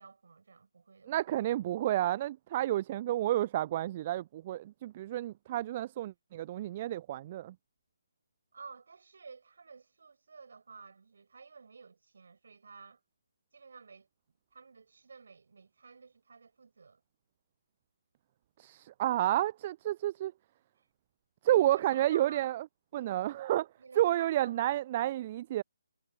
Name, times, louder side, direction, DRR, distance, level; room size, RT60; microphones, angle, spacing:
voice 1, 0.0-1.3 8.5-13.0 13.5-14.1 14.5-17.0 20.8-20.9 21.5-22.5 22.9-23.4 23.8-24.6, right 5 dB, 55° right, 7.3 m, -53 dB
voice 2, 1.1-7.5 18.6-20.3 21.4-22.7 22.9-23.7 24.0-25.6, right 13 dB, 30° right, 0.4 m, -30 dB
figure-of-eight pair, 140°, 0 cm